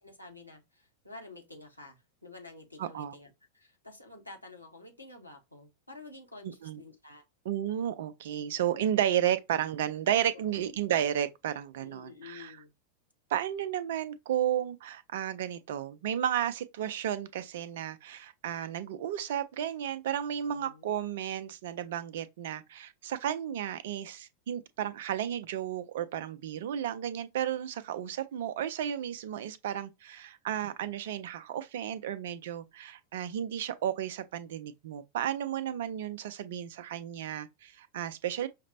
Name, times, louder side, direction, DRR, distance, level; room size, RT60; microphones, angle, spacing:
voice 1, 0.0-7.2 8.6-8.7 10.4-10.6 11.8-12.7 20.5-20.9, left 3 dB, 85° left, 0.9 m, -50 dB
voice 2, 2.8-3.1 6.4-6.8 7.5-12.6 13.3-38.5, right 10 dB, 55° right, 0.4 m, -33 dB
5.7 x 2.0 x 2.5 m
figure-of-eight pair, 90°, 0 cm